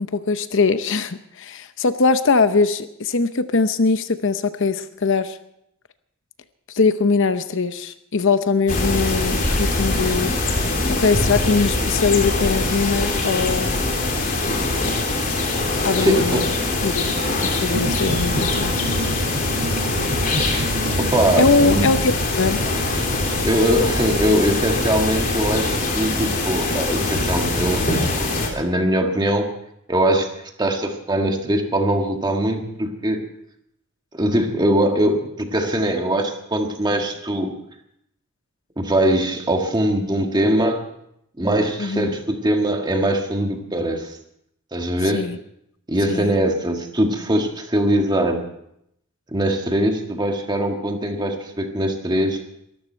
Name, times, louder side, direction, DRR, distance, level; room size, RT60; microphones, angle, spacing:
voice 1, 0.0-5.4 6.7-10.3 11.0-13.8 15.8-16.4 16.8-16.9 17.4-18.7 21.4-22.6 41.8-42.1 45.1-45.4 46.1-46.3, left 4 dB, 60° left, 11 dB, 0.8 m, -21 dB
sound 1, 8.7-28.5, left 2 dB, 40° left, 3.1 m, -23 dB
voice 2, 15.9-16.5 21.0-21.9 23.2-29.5 29.9-30.3 30.6-33.3 34.1-37.5 38.8-40.8 41.4-44.2 44.7-45.3 45.9-48.4 49.3-52.4, right 1 dB, 20° right, 4 dB, 1.7 m, -21 dB
sound 2, 17.7-26.3, right 1 dB, 70° right, 4.6 m, -29 dB
23.0 x 13.5 x 4.5 m, 0.77 s
head